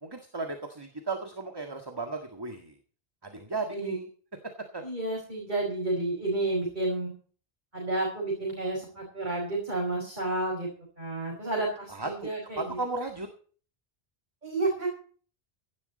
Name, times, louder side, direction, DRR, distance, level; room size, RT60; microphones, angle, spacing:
voice 1, 0.0-2.7 3.2-4.1 4.4-4.8 11.9-12.3 12.6-13.3, right 3 dB, 25° right, 5 dB, 1.8 m, -35 dB
voice 2, 4.8-7.1 7.7-10.7 11.0-12.8 14.4-14.9, right 2 dB, 50° right, -2 dB, 5.4 m, -30 dB
17.0 x 11.5 x 4.1 m, 0.42 s
omnidirectional pair, 1.0 m